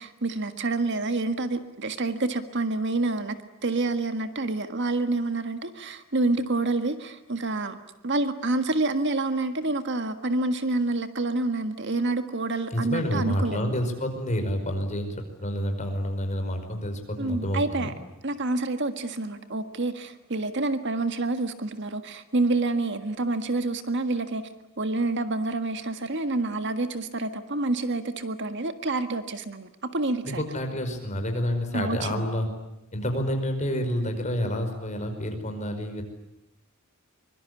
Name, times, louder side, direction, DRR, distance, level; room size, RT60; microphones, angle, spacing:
voice 1, 0.0-7.8 8.0-13.6 17.2-17.9 18.2-24.4 24.8-30.4 31.7-32.2, right 2 dB, 55° right, 9 dB, 1.7 m, -28 dB
voice 2, 12.7-17.9 30.2-32.5 32.9-36.0, equal, 35° left, 5 dB, 5.1 m, -29 dB
24.5 x 23.5 x 9.7 m, 0.89 s
head